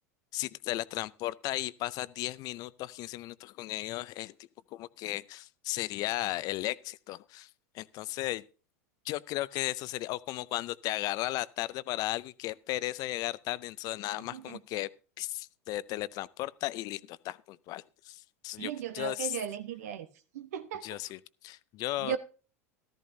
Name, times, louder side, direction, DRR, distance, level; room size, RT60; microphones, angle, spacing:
voice 1, 0.3-4.3 4.7-7.5 7.7-8.4 9.0-14.9 15.2-19.4 20.8-22.2, left 16 dB, 50° left, 0.5 m, -35 dB
voice 2, 18.6-20.1 20.3-20.8 22.0-22.2, right 9 dB, 75° right, 1.0 m, -36 dB
14.0 x 13.5 x 2.7 m
hypercardioid pair, 90°, 9 cm